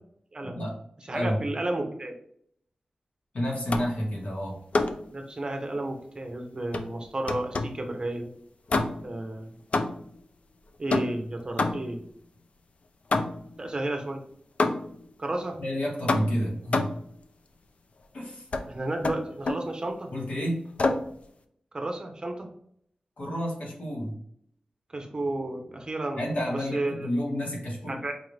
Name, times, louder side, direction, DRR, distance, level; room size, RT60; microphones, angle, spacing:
voice 1, 0.4-0.8 1.1-1.5 3.3-4.6 15.6-16.9 18.1-18.5 20.1-20.7 23.2-24.1 26.1-28.1, equal, 75° left, -2 dB, 1.5 m, -30 dB
voice 2, 1.1-2.1 5.1-8.3 9.0-9.5 10.8-12.0 13.6-14.2 15.2-15.6 18.7-20.1 21.7-22.5 24.9-26.2 26.5-27.0 27.9-28.1, right 2 dB, 35° right, 4 dB, 0.7 m, -32 dB
sound 1, 3.7-4.1 4.7-5.1 6.7-7.9 8.7-9.2 9.7-10.2 10.9-12.1 13.1-13.6 14.6-15.1 16.1-17.1 18.5-18.7 19.0-19.7 20.8-21.1, left 3 dB, 60° left, 0.4 m, -28 dB
4.7 x 2.5 x 3.2 m, 0.66 s
wide cardioid pair, 120°, 2 cm